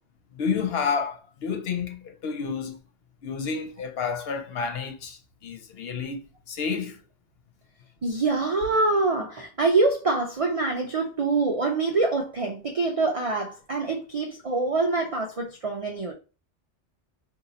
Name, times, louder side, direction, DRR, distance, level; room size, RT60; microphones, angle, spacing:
voice 1, 0.3-2.8 3.2-7.0, left 5 dB, 65° left, 0.8 m, -30 dB
voice 2, 8.0-16.1, right 3 dB, 55° right, 0.3 m, -25 dB
2.8 x 2.5 x 4.0 m
omnidirectional pair, 1.2 m